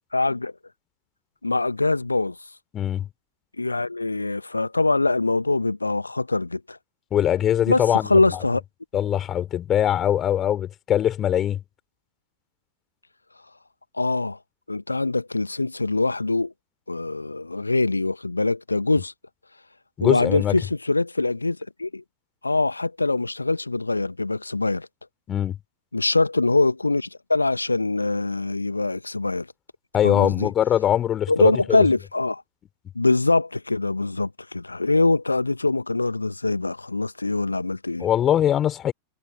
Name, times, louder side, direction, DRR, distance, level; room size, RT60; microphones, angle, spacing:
voice 1, 0.1-0.5 1.4-2.3 3.6-6.8 7.7-8.6 14.0-14.4 14.7-16.5 16.9-19.1 20.0-22.0 22.4-24.9 25.9-29.5 30.0-30.5 31.3-32.4 32.9-38.1, left 3 dB, 80° left, 1.3 m, -23 dB
voice 2, 2.7-3.1 7.1-8.4 8.9-11.6 20.0-20.5 25.3-25.6 29.9-31.5 38.0-38.9, left 10 dB, 30° left, 4.4 m, -22 dB
figure-of-eight pair, 90°, 0 cm